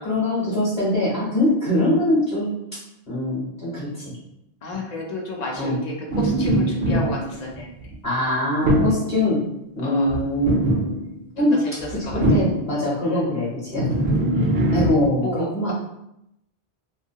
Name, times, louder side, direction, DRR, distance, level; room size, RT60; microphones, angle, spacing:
voice 1, 0.0-2.5 3.1-4.1 5.6-5.7 8.0-9.4 9.8-10.5 11.3-11.5 11.9-13.9 14.7-15.2 15.5-15.7, left 1 dB, 40° left, -8 dB, 1.0 m, -22 dB
voice 2, 4.6-7.7 8.2-8.3 9.8-10.2 11.4-12.4 13.0-13.4 14.3-14.7 15.2-15.7, left 1 dB, 55° left, 0 dB, 0.5 m, -31 dB
sound 1, 6.1-7.9 8.6-9.1 10.1-11.1 11.8-12.8 13.7-14.9, right 1 dB, 65° right, 0.8 m, -22 dB
2.6 x 2.3 x 2.7 m, 0.81 s
omnidirectional pair, 1.1 m